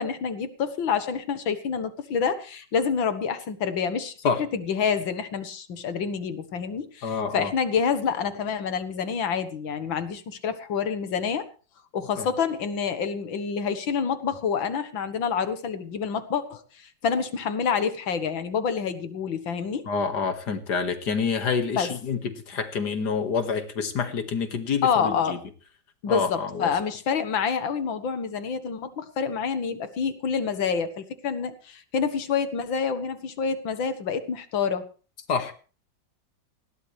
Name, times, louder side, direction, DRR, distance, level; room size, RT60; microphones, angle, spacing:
voice 1, 0.0-4.1 4.5-11.5 11.9-19.8 21.7-21.9 24.8-25.4 26.0-34.9, left 6 dB, 90° left, 10 dB, 2.2 m, -27 dB
voice 2, 7.0-7.5 12.2-12.3 19.9-25.4 26.1-26.7 35.3-35.5, left 5 dB, 60° left, 8 dB, 2.4 m, -27 dB
19.5 x 17.0 x 3.3 m, 0.37 s
omnidirectional pair, 2.0 m